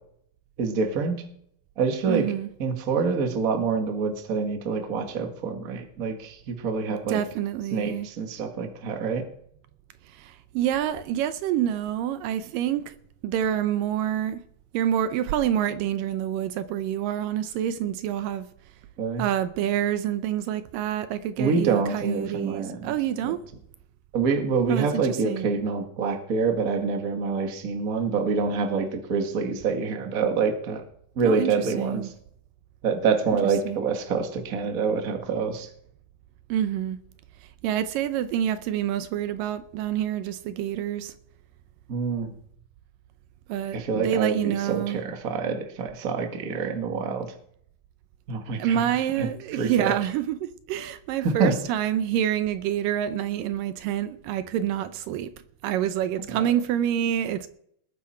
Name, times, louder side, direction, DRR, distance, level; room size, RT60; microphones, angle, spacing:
voice 1, 0.6-1.2 1.8-2.3 2.6-7.2 7.7-9.2 19.0-19.2 21.4-22.9 23.2-23.3 24.1-30.8 31.1-32.1 32.8-35.7 41.9-42.3 43.7-47.3 48.3-49.9 51.2-51.5 56.3-56.4, right 5 dB, 35° right, 1.4 m, -26 dB
voice 2, 2.1-2.5 7.1-8.1 10.1-13.0 13.2-14.4 14.7-18.5 19.2-23.4 24.7-25.5 31.3-32.1 33.7-33.9 36.5-37.0 37.6-41.1 43.5-45.0 48.6-55.3 55.6-57.5, right 10 dB, 80° right, 2.3 m, -27 dB
20.0 x 9.6 x 4.4 m
omnidirectional pair, 4.1 m